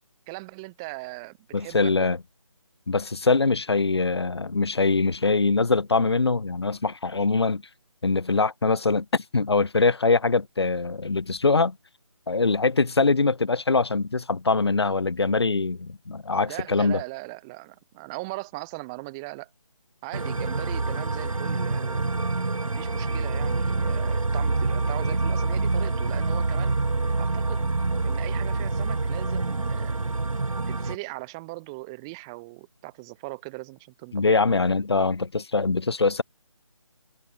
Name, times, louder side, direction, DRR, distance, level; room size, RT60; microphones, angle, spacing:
voice 1, 0.3-2.1 16.5-19.5 20.0-22.1 22.7-26.8 27.2-27.6 28.0-30.0 30.7-34.4, right 26 dB, 10° right, 5.3 m, -39 dB
voice 2, 1.5-2.2 2.9-7.6 8.0-11.7 12.3-17.0 34.1-36.2, left 3 dB, 50° left, 1.1 m, -23 dB
sound 1, 20.1-31.0, right 3 dB, 80° right, 1.5 m, -26 dB
figure-of-eight pair, 175°, 17 cm